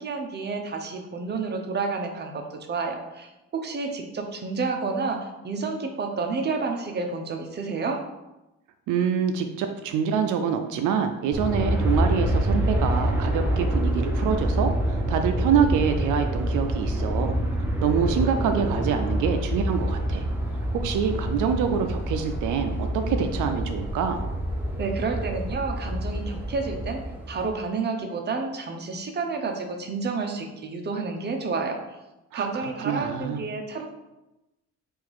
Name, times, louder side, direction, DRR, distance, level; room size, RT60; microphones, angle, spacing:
voice 1, 0.0-8.0 24.8-31.8 32.3-33.9, right 4 dB, 35° right, 4 dB, 0.7 m, -30 dB
voice 2, 8.9-17.4 17.8-20.3 20.7-24.3 32.3-33.4, right 7 dB, 85° right, 6 dB, 0.5 m, -26 dB
Aircraft, 11.3-27.5, right 1 dB, 5° right, 0.9 m, -27 dB
3.7 x 2.6 x 4.7 m, 0.97 s
cardioid pair, 90°, 30 cm